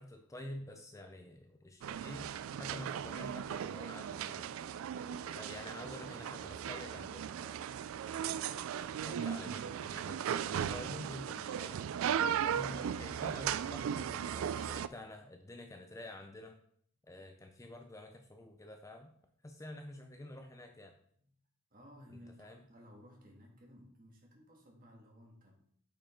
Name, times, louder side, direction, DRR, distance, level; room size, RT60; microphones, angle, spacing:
voice 1, 0.0-4.5 5.0-7.6 8.2-11.8 12.4-16.6 17.1-19.1 19.4-20.9 22.1-22.6, left 1 dB, 15° left, 5 dB, 0.5 m, -49 dB
sound 1, 1.8-14.9, right 8 dB, 75° right, 0.3 m, -37 dB
voice 2, 5.1-5.4 10.7-10.9 12.4-12.7 21.2-21.3 21.7-25.5, equal, 40° right, 0 dB, 1.9 m, -57 dB
8.5 x 5.3 x 3.8 m, 0.64 s
head